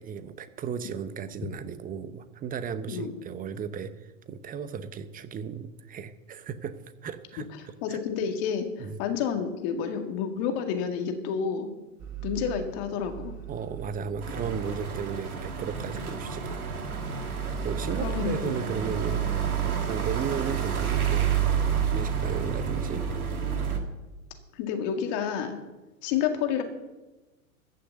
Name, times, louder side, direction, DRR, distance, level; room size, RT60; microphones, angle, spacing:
voice 1, 0.0-8.0 8.8-9.0 13.5-17.0 17.3-21.3 21.6-23.1, right 7 dB, 20° right, 13 dB, 0.8 m, -35 dB
voice 2, 7.8-11.7 12.2-13.3 18.0-18.5 24.6-25.6 26.0-26.6, left 7 dB, 45° left, 5 dB, 2.1 m, -29 dB
sound 1, 12.0-20.1, right 11 dB, 40° right, 1.9 m, -44 dB
sound 2, 14.2-23.8, right 7 dB, 85° right, 2.1 m, -29 dB
14.5 x 6.6 x 8.0 m, 1.1 s
hypercardioid pair, 105°, 43 cm